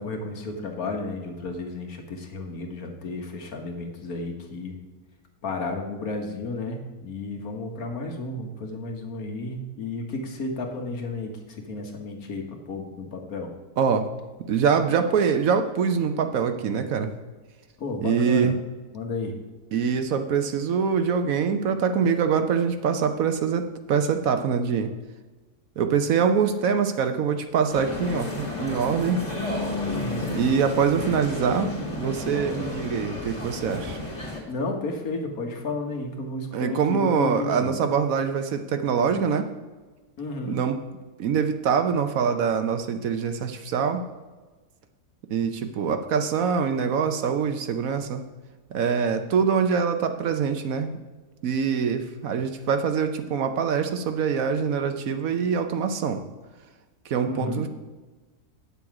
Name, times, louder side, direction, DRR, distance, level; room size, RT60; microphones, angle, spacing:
voice 1, 0.0-4.8 5.4-13.5 17.8-18.5 18.9-19.3 29.9-30.3 34.5-37.7 40.2-40.6 57.3-57.6, left 2 dB, 65° left, 3 dB, 1.8 m, -32 dB
voice 2, 14.5-17.1 18.0-18.6 19.7-24.9 25.8-29.2 30.2-34.0 36.5-39.5 40.5-40.8 41.2-44.0 45.3-48.2 48.7-51.0 51.4-56.2 57.1-57.7, right 6 dB, 65° right, 8 dB, 1.1 m, -24 dB
sound 1, 27.7-34.4, left 2 dB, 25° left, 2.0 m, -32 dB
9.2 x 7.0 x 4.8 m, 1.3 s
omnidirectional pair, 1.6 m